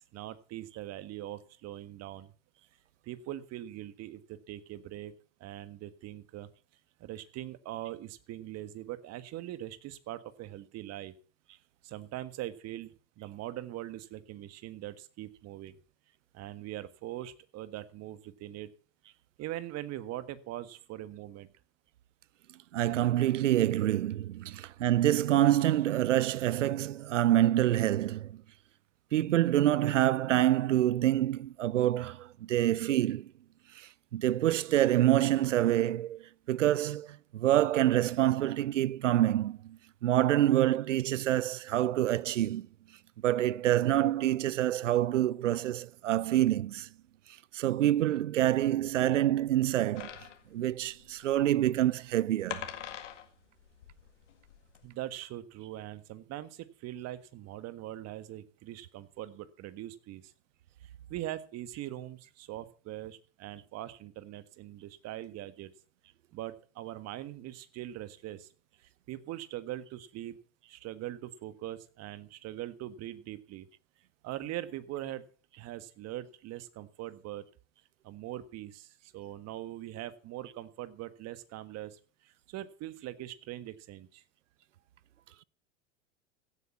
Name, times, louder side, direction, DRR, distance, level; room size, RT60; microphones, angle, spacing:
voice 1, 0.1-2.3 3.0-5.1 5.4-6.5 7.0-11.1 11.8-12.9 13.2-15.8 16.3-18.7 19.4-21.5 24.5-24.6 54.8-60.3 60.8-65.7 66.3-68.5 68.8-70.4 70.7-73.7 74.2-75.3 75.6-77.4 78.0-82.0 82.3-84.2, right 14 dB, 45° right, 1.6 m, -42 dB
voice 2, 22.7-28.4 29.1-33.3 33.8-42.7 43.2-46.9 47.5-50.2 50.5-52.7, right 13 dB, 85° right, 0.6 m, -27 dB
sound 1, 50.0-54.9, left 10 dB, 75° left, 2.0 m, -44 dB
16.0 x 8.6 x 5.9 m
hypercardioid pair, 90°, 36 cm